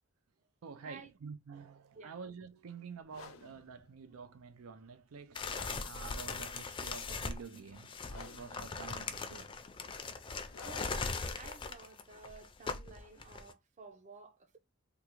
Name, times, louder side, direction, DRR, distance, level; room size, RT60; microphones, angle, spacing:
voice 1, 0.6-5.4 5.8-9.5, right 5 dB, 85° right, 0.5 m, -49 dB
sound 1, 3.0-12.9, left 4 dB, 80° left, 0.6 m, -56 dB
sound 2, 5.4-13.5, left 4 dB, 25° left, 0.4 m, -40 dB
voice 2, 10.6-14.6, right 4 dB, 35° right, 0.6 m, -53 dB
3.5 x 2.4 x 3.0 m
head